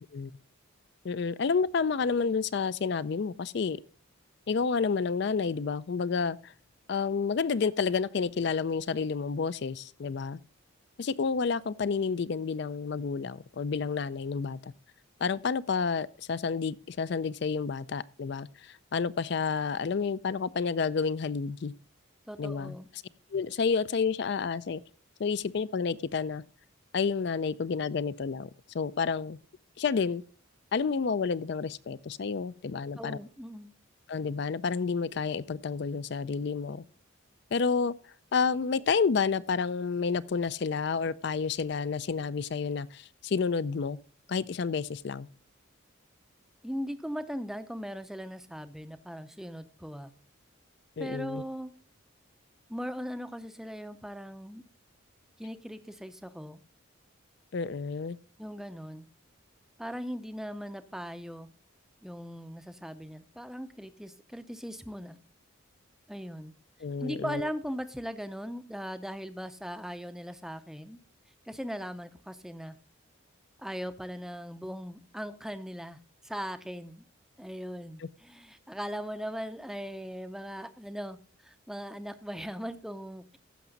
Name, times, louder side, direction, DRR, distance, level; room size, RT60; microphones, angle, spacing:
voice 1, 1.0-3.8 4.5-6.5 6.9-10.4 11.0-14.7 15.2-21.7 22.4-22.7 23.3-24.8 25.2-26.4 26.9-28.5 28.7-29.4 29.8-30.2 30.7-33.2 34.1-36.8 37.5-37.9 38.3-44.0 44.3-45.3 51.0-51.4 57.5-58.2 66.8-67.5 78.0-78.1, left 5 dB, 50° left, 0.4 m, -30 dB
voice 2, 22.3-22.9 33.0-33.7 46.6-50.1 51.0-51.7 52.7-54.6 55.4-56.6 58.4-59.1 59.8-61.5 62.0-65.2 66.1-66.5 67.0-71.0 71.5-72.7 73.6-77.0 77.4-83.4, equal, ahead, 0.5 m, -39 dB
15.5 x 6.0 x 3.9 m
head